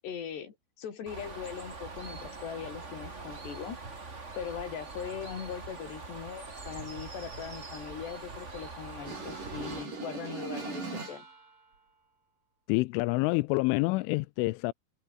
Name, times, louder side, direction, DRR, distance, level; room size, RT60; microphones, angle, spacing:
voice 1, 0.0-3.8 4.4-11.3, left 8 dB, 60° left, 5.8 m, -40 dB
Bird, 1.1-9.9, right 3 dB, 25° right, 1.8 m, -43 dB
sound 1, 9.1-11.5, right 4 dB, 45° right, 8.5 m, -39 dB
voice 2, 12.7-14.7, left 23 dB, 90° left, 3.1 m, -27 dB
omnidirectional pair, 5.5 m